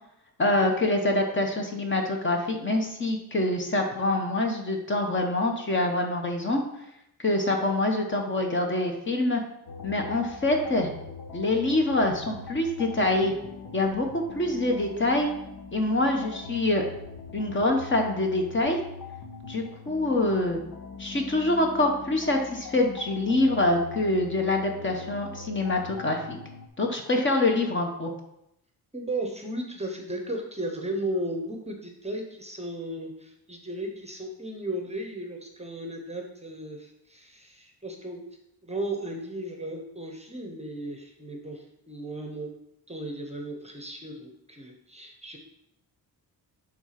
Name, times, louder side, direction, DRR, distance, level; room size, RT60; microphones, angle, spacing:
voice 1, 0.4-6.6 7.2-9.4 9.8-10.9 11.3-13.3 13.7-15.3 15.7-16.8 17.3-18.8 19.5-20.6 21.0-26.4 26.8-28.1, left 2 dB, 30° left, 3 dB, 1.0 m, -25 dB
sound 1, 9.7-26.7, left 5 dB, 60° left, 1.2 m, -42 dB
voice 2, 28.9-38.2 38.6-42.5 42.9-45.4, right 1 dB, 15° right, 2 dB, 0.8 m, -35 dB
8.0 x 3.7 x 5.8 m, 0.80 s
wide cardioid pair, 160°, 40 cm